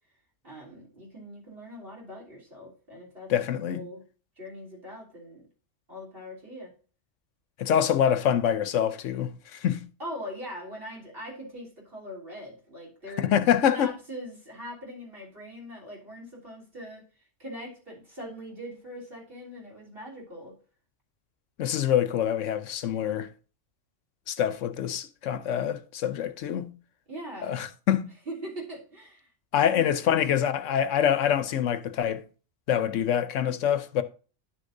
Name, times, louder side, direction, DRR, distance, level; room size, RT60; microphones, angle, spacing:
voice 1, 0.4-3.3 3.7-4.0 4.4-5.4 5.9-6.7 10.0-13.3 13.6-20.5 27.1-27.6 28.3-29.3, equal, 50° right, 3.6 m, -41 dB
voice 2, 3.3-3.8 7.6-9.8 13.2-13.9 21.6-23.3 24.3-26.7 27.4-28.1 29.5-32.2 32.7-34.0, left 9 dB, 85° left, 1.1 m, -25 dB
11.0 x 6.5 x 2.6 m
omnidirectional pair, 1.2 m